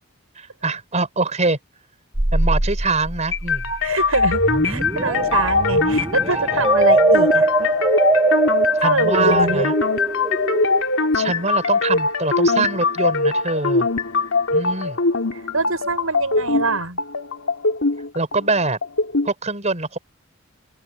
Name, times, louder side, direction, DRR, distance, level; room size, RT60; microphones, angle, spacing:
voice 1, 0.4-1.6 2.3-3.6 6.2-6.6 8.7-9.7 11.1-13.9 14.5-15.0 18.1-18.8 19.2-20.0, right 3 dB, 35° right, 5.2 m, -24 dB
sound 1, 2.1-10.8, right 2 dB, 15° right, 0.6 m, -22 dB
sound 2, 3.3-19.3, left 3 dB, 70° left, 3.2 m, -21 dB
voice 2, 3.8-7.7 8.8-9.7 15.5-17.0, right 3 dB, 85° right, 6.9 m, -25 dB
open air
head